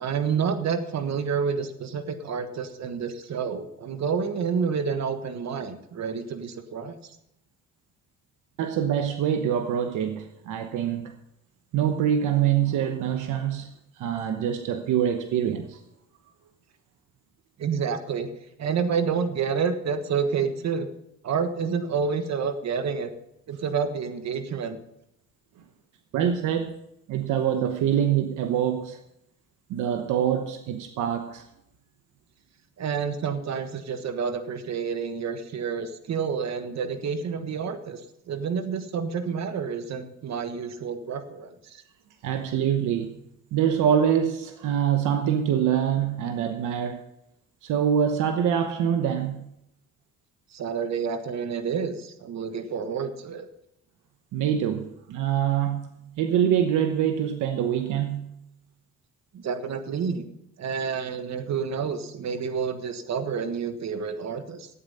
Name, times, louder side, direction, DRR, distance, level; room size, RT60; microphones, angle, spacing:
voice 1, 0.0-7.0 17.6-18.3 18.6-20.9 21.2-23.1 23.5-24.8 32.8-38.0 38.3-41.8 50.5-53.5 59.3-60.2 60.6-64.7, right 6 dB, 60° right, 1.4 m, -29 dB
voice 2, 8.6-11.2 11.7-13.7 14.0-15.8 26.1-26.8 27.1-29.0 29.7-31.4 42.2-43.1 43.5-47.0 47.6-49.5 54.3-58.3, right 9 dB, 85° right, 1.0 m, -25 dB
12.5 x 9.0 x 5.4 m
cardioid pair, 90°, 30 cm